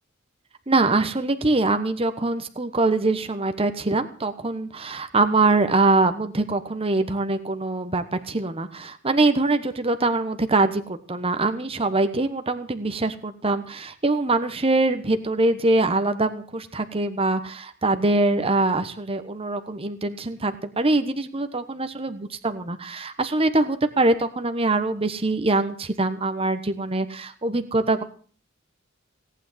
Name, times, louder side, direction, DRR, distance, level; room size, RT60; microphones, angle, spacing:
voice 1, 0.7-28.0, right 2 dB, 30° right, 9 dB, 1.1 m, -23 dB
18.0 x 9.1 x 7.4 m, 0.42 s
head